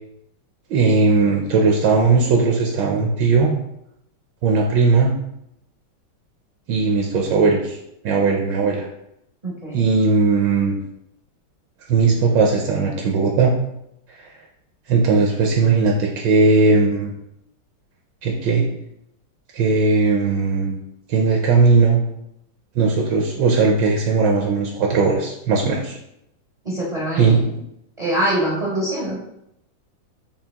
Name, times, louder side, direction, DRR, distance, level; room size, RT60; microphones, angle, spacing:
voice 1, 0.7-3.5 4.4-5.1 6.7-7.8 8.0-8.9 9.7-10.8 11.9-13.5 14.2-14.3 14.9-17.1 18.2-18.6 19.5-20.8 21.1-22.0 22.7-26.0 27.2-27.4, right 4 dB, 75° right, 0 dB, 1.2 m, -18 dB
voice 2, 9.4-9.9 26.6-27.5 28.0-29.3, right 1 dB, 50° right, -5 dB, 0.4 m, -24 dB
5.6 x 2.3 x 3.4 m, 0.79 s
omnidirectional pair, 2.1 m